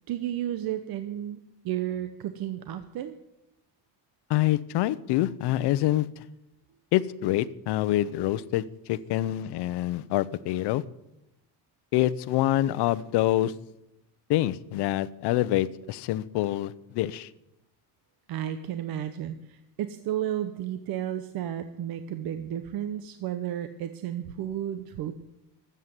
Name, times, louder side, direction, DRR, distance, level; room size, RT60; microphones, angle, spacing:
voice 1, 0.1-3.2 18.3-25.1, right 11 dB, 60° right, 9 dB, 0.9 m, -33 dB
voice 2, 4.3-6.2 6.9-10.8 11.9-13.5 14.3-17.3, left 14 dB, 80° left, 16 dB, 0.8 m, -26 dB
13.5 x 8.3 x 9.4 m, 0.88 s
cardioid pair, 155°, 40 cm